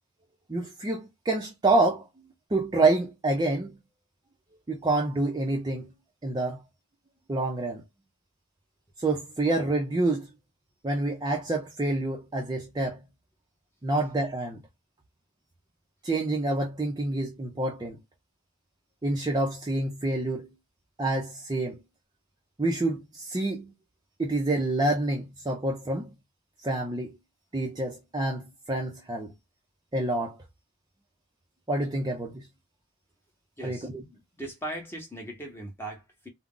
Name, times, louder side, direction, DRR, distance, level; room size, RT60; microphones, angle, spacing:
voice 1, 0.5-2.1 2.5-3.8 4.7-5.9 6.2-6.6 7.3-7.8 9.0-10.3 10.8-13.0 13.8-14.6 16.0-18.0 19.0-20.5 21.0-21.8 22.6-23.7 24.2-26.1 26.6-27.1 27.5-29.3 29.9-30.4 31.7-32.5 33.6-33.8, right 2 dB, 20° right, 0.4 m, -27 dB
voice 2, 33.6-36.3, right 1 dB, 10° left, 0.9 m, -39 dB
2.3 x 2.0 x 3.6 m
head